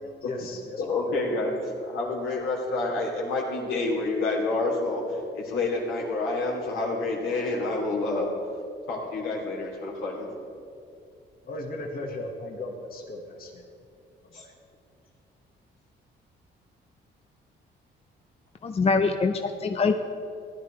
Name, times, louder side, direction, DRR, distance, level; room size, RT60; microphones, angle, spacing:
voice 1, 0.0-1.2 11.4-13.7 14.3-14.5, left 2 dB, 50° left, 1 dB, 1.5 m, -37 dB
voice 2, 0.8-1.6 1.8-5.0 5.3-8.3 8.9-10.3 14.3-14.4, left 3 dB, 85° left, -3 dB, 2.9 m, -28 dB
voice 3, 18.6-20.0, left 4 dB, 30° left, 5 dB, 0.6 m, -24 dB
16.5 x 11.0 x 3.2 m, 2.4 s
cardioid pair, 90°, 20 cm